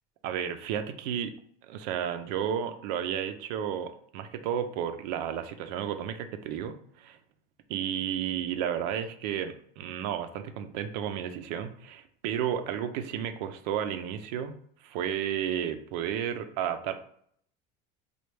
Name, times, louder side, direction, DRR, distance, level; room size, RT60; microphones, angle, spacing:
voice 1, 0.2-1.3 1.6-7.2 7.7-14.5 14.8-16.9, right 9 dB, 80° right, 9 dB, 0.5 m, -32 dB
3.2 x 2.2 x 3.2 m, 0.64 s
cardioid pair, 180°, 21 cm